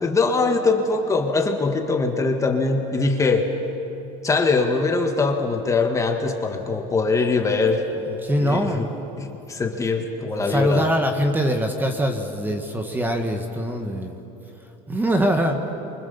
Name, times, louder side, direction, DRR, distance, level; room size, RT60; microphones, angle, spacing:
voice 1, 0.0-3.5 4.2-7.9 8.4-8.9 9.2-10.9, left 3 dB, 20° left, 3 dB, 1.9 m, -22 dB
voice 2, 8.2-8.9 10.3-14.2 14.9-15.6, equal, 10° right, 4 dB, 1.8 m, -23 dB
28.0 x 24.5 x 7.2 m, 3.0 s
cardioid pair, 135°, 17 cm